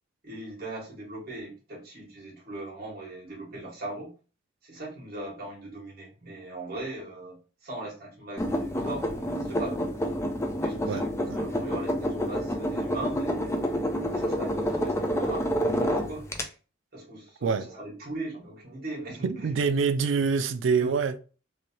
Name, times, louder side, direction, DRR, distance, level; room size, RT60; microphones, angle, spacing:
voice 1, 0.2-4.1 4.6-9.9 10.6-13.7 14.1-15.5 15.8-16.5 16.9-19.5 20.8-20.9, right 2 dB, 50° right, 1.7 m, -39 dB
sound 1, 8.4-16.4, equal, 15° left, 0.4 m, -28 dB
voice 2, 19.2-21.1, right 5 dB, 75° right, 0.4 m, -25 dB
3.2 x 2.6 x 2.8 m
head